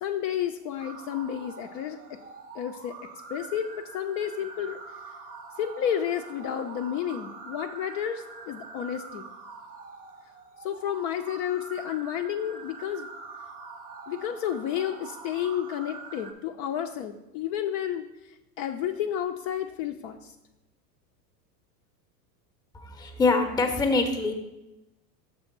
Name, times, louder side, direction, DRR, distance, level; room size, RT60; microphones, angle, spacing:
voice 1, 0.0-2.0 2.5-3.0 3.3-3.7 3.9-4.8 5.6-9.3 10.6-13.1 14.1-18.0 18.6-20.3, left 10 dB, 50° left, 5 dB, 0.5 m, -31 dB
sound 1, 0.8-16.3, right 4 dB, 20° right, 0.3 m, -44 dB
voice 2, 22.7-24.3, left 3 dB, 10° left, 6 dB, 0.7 m, -24 dB
6.6 x 3.5 x 5.9 m, 0.97 s
hypercardioid pair, 110°, 50 cm